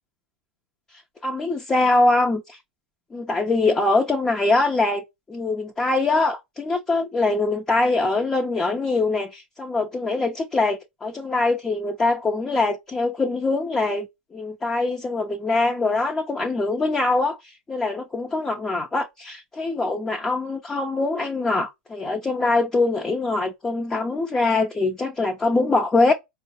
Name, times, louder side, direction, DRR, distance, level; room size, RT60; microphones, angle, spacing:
voice 1, 1.2-2.6 3.1-14.1 14.3-17.4 17.7-26.1, left 3 dB, 15° left, 0.7 m, -23 dB
4.4 x 2.1 x 2.7 m
hypercardioid pair, 120°, 5 cm